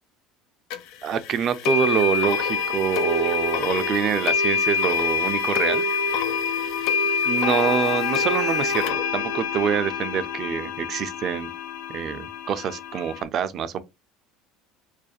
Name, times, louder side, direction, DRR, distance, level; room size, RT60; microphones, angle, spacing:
sound 1, 0.7-0.8 1.7-13.2, left 5 dB, 70° left, 0.3 m, -25 dB
voice 1, 1.0-5.8 7.2-11.5 11.9-13.8, right 8 dB, 50° right, 0.4 m, -26 dB
2.4 x 2.1 x 2.5 m
hypercardioid pair, 75°, 0 cm